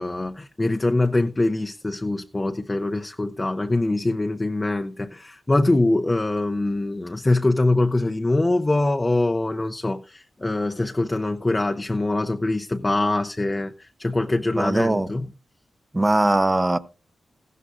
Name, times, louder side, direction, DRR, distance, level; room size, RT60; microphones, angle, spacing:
voice 1, 0.0-15.2, left 2 dB, 20° left, 0.5 m, -23 dB
voice 2, 14.6-15.1 15.9-16.8, right 2 dB, 20° right, 0.7 m, -20 dB
15.5 x 13.0 x 2.5 m
wide cardioid pair, 95°, 0 cm